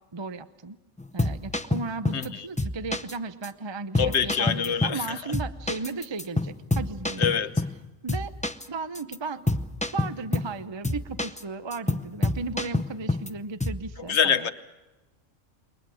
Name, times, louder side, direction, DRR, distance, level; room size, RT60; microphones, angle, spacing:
voice 1, 0.1-0.8 1.1-7.3 8.0-8.3 8.7-9.5 9.9-14.5, right 4 dB, 25° right, 11 dB, 0.7 m, -35 dB
sound 1, 1.0-2.3 2.6-3.1 3.4-3.5 3.9-5.1 5.3-7.8 8.1-8.7 8.9-9.2 9.5-10.5 10.8-11.4 11.7-13.3 13.6-13.9, left 2 dB, 10° left, 0.4 m, -28 dB
voice 2, 2.1-2.5 4.0-5.2 7.2-7.6 14.0-14.5, left 7 dB, 60° left, 11 dB, 1.2 m, -25 dB
28.5 x 23.0 x 6.3 m, 1.1 s
omnidirectional pair, 1.3 m